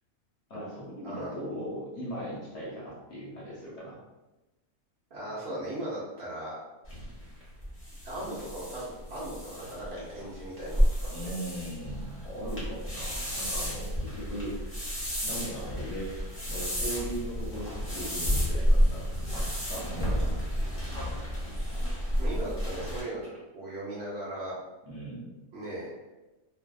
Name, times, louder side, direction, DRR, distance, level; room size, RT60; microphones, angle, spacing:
voice 1, 0.5-4.0 11.1-14.9 15.2-16.1 16.5-20.4 24.9-25.3, equal, 60° left, -6 dB, 0.9 m, -39 dB
voice 2, 1.0-1.3 5.1-6.6 8.0-10.8 11.2-11.3 21.9-24.5 25.5-25.9, right 1 dB, 55° right, -7 dB, 0.8 m, -38 dB
sound 1, 6.8-23.0, equal, 15° left, 0.5 m, -31 dB
2.6 x 2.3 x 2.2 m, 1.1 s
omnidirectional pair, 1.5 m